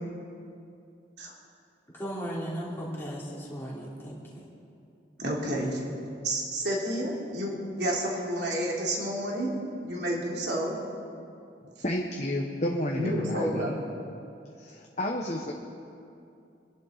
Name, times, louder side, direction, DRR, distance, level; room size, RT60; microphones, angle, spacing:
voice 1, 1.9-4.4, equal, 15° left, -6 dB, 3.0 m, -36 dB
voice 2, 5.2-5.8 6.2-9.5 9.8-10.8 13.0-13.9, right 1 dB, 65° right, -3 dB, 3.2 m, -30 dB
voice 3, 11.8-13.7 14.6-15.5, left 1 dB, 40° left, 0 dB, 1.0 m, -31 dB
25.0 x 11.0 x 4.0 m, 2.6 s
head